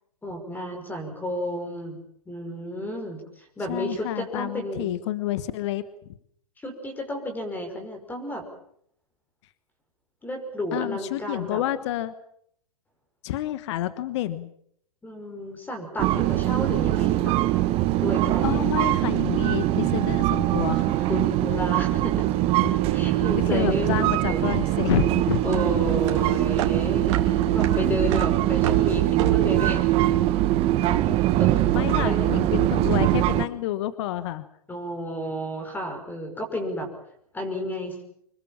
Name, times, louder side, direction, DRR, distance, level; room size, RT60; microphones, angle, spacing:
voice 1, 0.2-2.0 2.3-4.9 6.6-8.4 10.2-11.6 15.0-17.4 17.9-18.7 21.1-22.3 22.9-24.6 25.4-29.8 30.9-32.7 34.7-36.9 37.3-38.0, equal, 10° left, 5 dB, 5.7 m, -32 dB
voice 2, 3.7-5.8 10.7-12.1 13.2-14.5 18.4-21.1 22.6-22.8 23.5-25.4 31.7-34.4, left 13 dB, 50° left, 14 dB, 1.4 m, -29 dB
sound 1, 16.0-33.4, right 15 dB, 30° right, 1.4 m, -22 dB
sound 2, 24.2-30.7, right 11 dB, 50° right, 3.2 m, -31 dB
26.0 x 21.5 x 7.4 m, 0.69 s
hypercardioid pair, 120°, 19 cm